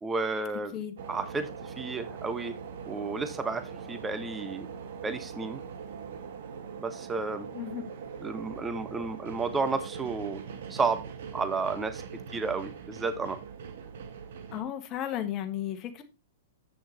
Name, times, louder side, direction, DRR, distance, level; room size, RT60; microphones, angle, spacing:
voice 1, 0.0-0.7 1.1-2.6 2.9-4.7 5.0-5.6 6.8-7.5 8.2-10.4 10.7-11.1 11.3-12.0 12.3-13.4, right 4 dB, 15° right, 10 dB, 1.2 m, -32 dB
sound 1, 1.0-14.6, right 6 dB, 65° right, 1.4 m, -42 dB
voice 2, 14.5-16.0, left 11 dB, 35° left, 7 dB, 1.6 m, -34 dB
8.3 x 6.5 x 4.2 m, 0.26 s
hypercardioid pair, 115°, 0 cm